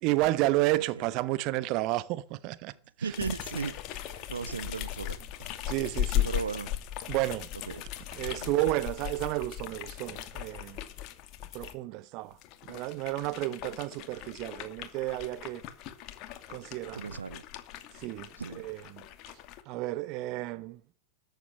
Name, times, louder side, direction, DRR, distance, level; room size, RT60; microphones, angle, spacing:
voice 1, 0.0-2.7 3.0-3.1 5.7-6.3 7.1-7.5 8.1-10.8 11.5-12.4 12.6-15.6 16.5-17.2 17.9-19.0 19.7-20.8, right 17 dB, 50° right, 1.1 m, -31 dB
voice 2, 3.0-5.6 6.2-6.7 7.7-7.8 8.4-8.7 17.0-17.4 18.4-18.6, right 5 dB, 85° right, 1.0 m, -37 dB
sound 1, 3.1-11.7 12.3-19.6, left 12 dB, 45° left, 2.5 m, -37 dB
14.0 x 9.8 x 9.8 m
hypercardioid pair, 100°, 0 cm